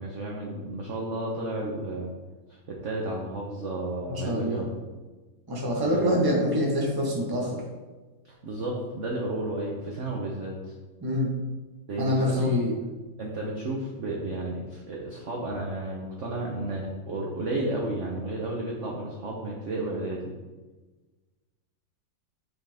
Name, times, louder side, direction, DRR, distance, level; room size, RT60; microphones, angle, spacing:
voice 1, 0.0-2.1 2.7-4.7 5.8-6.0 8.2-10.7 11.9-12.6 13.2-20.3, right 2 dB, 50° right, -2 dB, 0.9 m, -32 dB
voice 2, 4.1-4.6 5.5-7.6 11.0-11.3 12.0-12.7, equal, 15° right, -3 dB, 1.0 m, -25 dB
5.8 x 5.6 x 3.5 m, 1.2 s
omnidirectional pair, 2.1 m